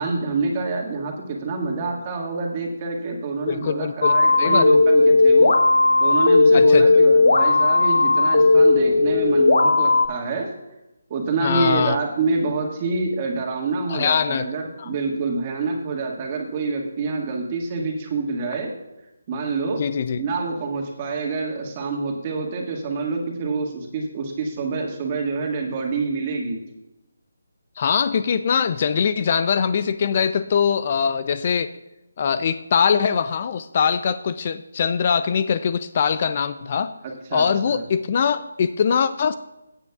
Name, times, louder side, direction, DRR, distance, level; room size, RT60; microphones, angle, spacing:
voice 1, 0.0-5.5 6.0-10.5 11.1-18.7 19.3-19.8 20.2-26.6 37.0-37.8, right 4 dB, 30° right, 1 dB, 1.8 m, -27 dB
voice 2, 3.5-4.6 6.5-6.9 11.4-12.0 13.9-14.4 14.8-14.9 19.8-20.2 27.8-31.7 32.2-36.9 37.3-39.4, left 7 dB, 40° left, 13 dB, 0.4 m, -22 dB
sound 1, 4.0-10.1, left 3 dB, 70° left, 1.0 m, -16 dB
16.5 x 8.9 x 2.4 m, 0.96 s
figure-of-eight pair, 155°, 0 cm